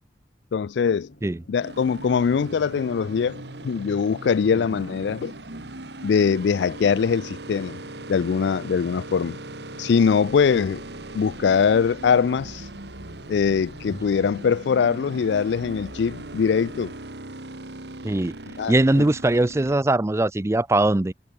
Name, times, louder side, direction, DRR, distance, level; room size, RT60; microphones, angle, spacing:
voice 1, 0.5-1.1 1.5-5.3 6.0-7.8 8.1-9.4 9.8-10.8 11.1-12.7 13.3-16.9 18.6-19.0, left 6 dB, 75° left, 0.4 m, -22 dB
sound 1, 0.8-16.8, equal, 55° left, 7.1 m, -52 dB
sound 2, 1.6-19.8, right 2 dB, 70° right, 2.4 m, -39 dB
voice 2, 18.0-18.3 18.7-21.1, right 2 dB, 15° right, 0.4 m, -21 dB
head